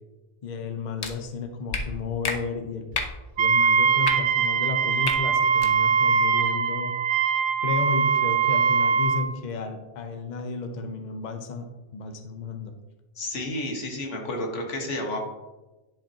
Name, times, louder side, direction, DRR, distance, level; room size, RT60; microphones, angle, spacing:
voice 1, 0.4-2.9 3.4-6.9 7.6-11.7 11.9-12.7, left 4 dB, 45° left, 5 dB, 0.8 m, -33 dB
sound 1, 1.0-1.1 1.7-1.8 2.2-2.4 2.9-3.1 4.0-4.1 5.0-5.2 5.5-5.7, left 4 dB, 70° left, 1.2 m, -29 dB
Wind instrument woodwind instrument, 3.4-9.3, right 6 dB, 55° right, 0.6 m, -22 dB
voice 2, 13.2-15.2, left 1 dB, 90° left, 1 dB, 1.6 m, -31 dB
10.5 x 5.7 x 2.9 m, 1.1 s
omnidirectional pair, 1.2 m